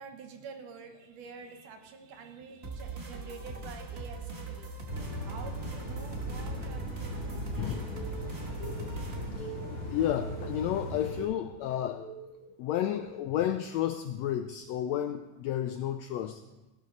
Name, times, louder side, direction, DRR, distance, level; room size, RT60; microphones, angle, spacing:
voice 1, 0.0-4.7 5.3-7.9, right 5 dB, 80° right, 5 dB, 2.8 m, -48 dB
sound 1, 2.6-9.3, right 3 dB, 55° right, 0.6 m, -40 dB
sound 2, 4.9-11.2, left 1 dB, 10° right, 5.1 m, -39 dB
voice 2, 7.6-8.0 8.6-12.0 12.6-16.4, left 11 dB, 85° left, 9 dB, 1.5 m, -32 dB
sound 3, 7.7-12.5, right 4 dB, 60° left, 4.3 m, -46 dB
16.0 x 12.5 x 4.0 m, 1.0 s
omnidirectional pair, 3.6 m